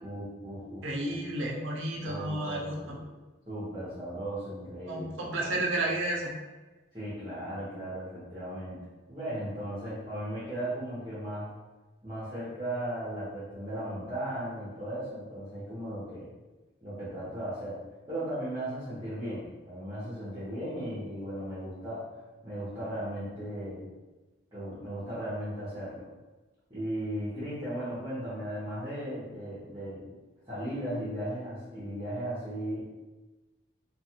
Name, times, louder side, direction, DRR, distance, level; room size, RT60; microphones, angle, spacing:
voice 1, 0.0-1.2 2.0-3.0 3.5-5.3 6.9-8.8 9.1-11.5 12.0-16.3 16.8-17.8 18.1-22.1 22.4-23.9 24.5-26.0 26.7-30.1 30.5-32.8, right 1 dB, 20° right, -15 dB, 1.0 m, -36 dB
voice 2, 0.8-3.0 4.9-6.3, right 1 dB, 70° right, -2 dB, 0.6 m, -32 dB
2.6 x 2.4 x 2.8 m, 1.2 s
head